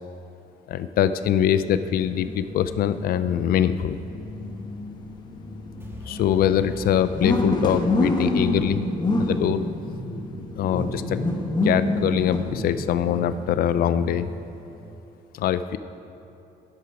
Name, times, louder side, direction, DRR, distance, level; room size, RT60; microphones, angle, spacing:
voice 1, 0.7-4.0 6.1-8.8 9.2-9.6 10.6-11.2 11.6-14.3 15.3-15.8, left 10 dB, 60° left, 12 dB, 0.5 m, -23 dB
sound 1, 1.6-14.6, left 1 dB, 25° left, 1.2 m, -28 dB
sound 2, 5.8-8.8, equal, 15° right, 1.6 m, -43 dB
11.5 x 11.0 x 4.8 m, 2.9 s
cardioid pair, 110°, 17 cm